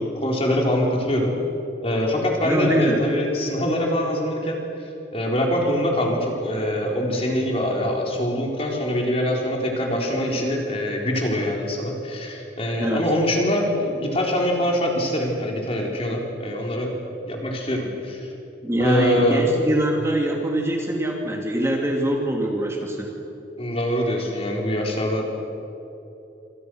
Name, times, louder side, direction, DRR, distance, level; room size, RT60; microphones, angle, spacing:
voice 1, 0.0-1.3 1.8-4.6 5.1-16.9 17.3-18.3 18.8-19.5 23.6-25.4, equal, 30° left, 0 dB, 4.3 m, -24 dB
voice 2, 2.4-3.0 12.8-13.0 18.6-23.1, right 1 dB, 15° right, 0 dB, 2.6 m, -23 dB
28.0 x 26.5 x 6.5 m, 3.0 s
head